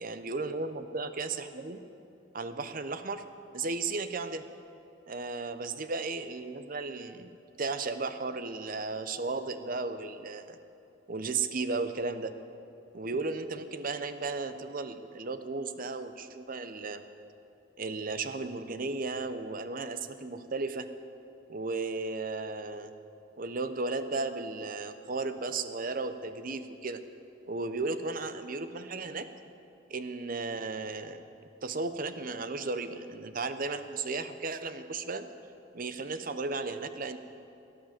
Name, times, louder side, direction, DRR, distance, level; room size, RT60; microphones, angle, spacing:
voice 1, 0.0-1.8 2.3-3.3 3.5-4.5 5.1-10.6 11.1-12.3 12.9-17.0 17.8-20.9 21.5-22.9 23.4-27.0 27.5-29.3 29.9-31.2 31.6-35.3 35.7-37.2, right 3 dB, 45° right, 10 dB, 0.7 m, -35 dB
17.5 x 10.0 x 7.5 m, 2.7 s
head